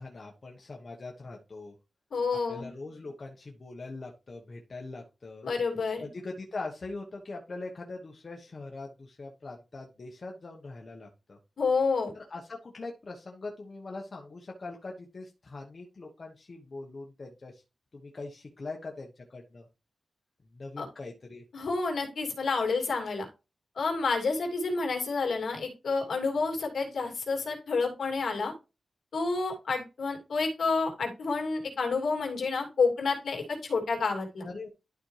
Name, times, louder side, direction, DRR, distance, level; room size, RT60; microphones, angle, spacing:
voice 1, 0.0-1.7 2.3-5.5 6.0-11.4 12.1-17.6 17.9-19.7 20.4-21.4 34.4-34.7, left 3 dB, 35° left, 0 dB, 1.1 m, -42 dB
voice 2, 2.1-2.7 5.4-6.1 11.6-12.1 20.8-20.9 21.5-23.3 23.8-28.5 29.1-34.4, left 4 dB, 70° left, 2 dB, 2.6 m, -29 dB
11.5 x 4.3 x 3.2 m, 0.28 s
wide cardioid pair, 165°, 0 cm